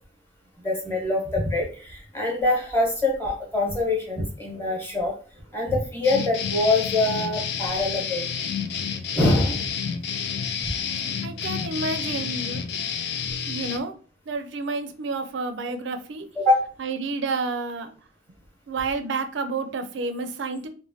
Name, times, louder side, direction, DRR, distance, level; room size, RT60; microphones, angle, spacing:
voice 1, 0.6-5.1 5.5-8.3 9.1-9.5 16.4-16.6, left 2 dB, 10° left, -2 dB, 1.0 m, -24 dB
sound 1, 6.0-13.8, left 7 dB, 60° left, 0.3 m, -30 dB
voice 2, 11.2-12.6 13.5-13.9 14.3-16.3 16.8-17.9 18.7-20.7, right 3 dB, 70° right, 9 dB, 0.4 m, -30 dB
3.1 x 2.1 x 2.7 m, 0.40 s
head